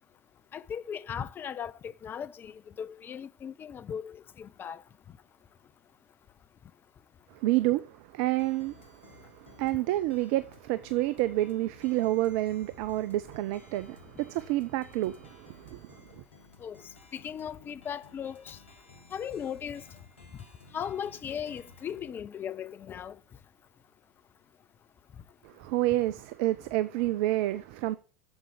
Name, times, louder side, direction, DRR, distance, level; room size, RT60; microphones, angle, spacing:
voice 1, 0.5-4.8 16.6-16.8 17.1-18.6 19.1-19.8 20.7-23.2, left 8 dB, 30° left, 0.7 m, -37 dB
voice 2, 7.3-16.0 25.4-28.0, right 16 dB, 60° right, 0.6 m, -29 dB
sound 1, 8.4-22.1, left 3 dB, 80° left, 2.1 m, -55 dB
8.0 x 7.5 x 7.1 m
figure-of-eight pair, 75°, 7 cm